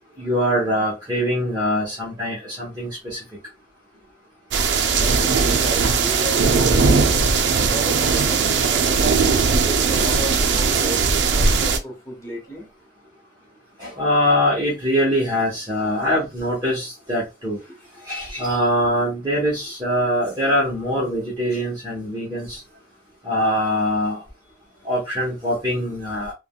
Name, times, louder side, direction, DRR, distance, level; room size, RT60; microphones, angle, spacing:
voice 1, 0.2-3.2 13.8-17.6 18.1-22.6 23.2-24.2 24.8-26.3, equal, 25° right, 0.9 m, -23 dB
sound 1, 4.5-11.8, right 5 dB, 80° right, 0.4 m, -19 dB
voice 2, 4.9-7.1 7.6-9.0 9.6-12.7 17.7-18.0, equal, 15° left, 0.8 m, -33 dB
3.4 x 2.2 x 2.2 m
head